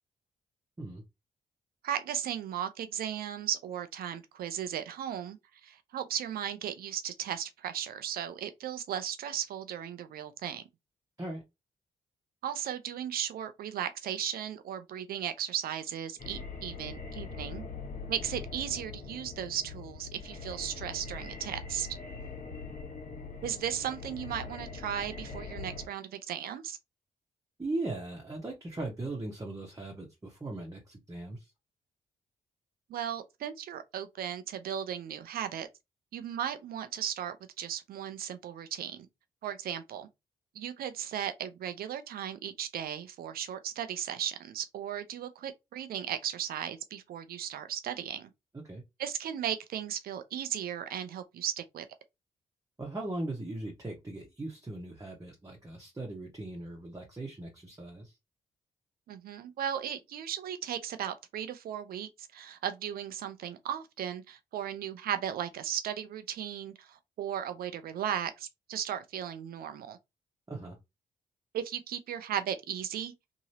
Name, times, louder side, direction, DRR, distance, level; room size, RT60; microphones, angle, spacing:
voice 1, 1.8-5.4 5.6-10.6 12.4-17.6 18.1-21.9 23.4-26.8 32.9-35.7 36.1-39.1 39.4-40.1 40.5-48.3 49.0-51.9 59.1-70.0 71.5-73.1, right 9 dB, 70° right, 0.5 m, -36 dB
sound 1, 16.2-25.9, left 4 dB, 55° left, 1.1 m, -42 dB
voice 2, 27.6-31.5 48.6-48.8 52.8-58.2 70.5-70.8, right 2 dB, 20° right, 1.0 m, -39 dB
2.9 x 2.7 x 2.8 m
supercardioid pair, 50°, 16 cm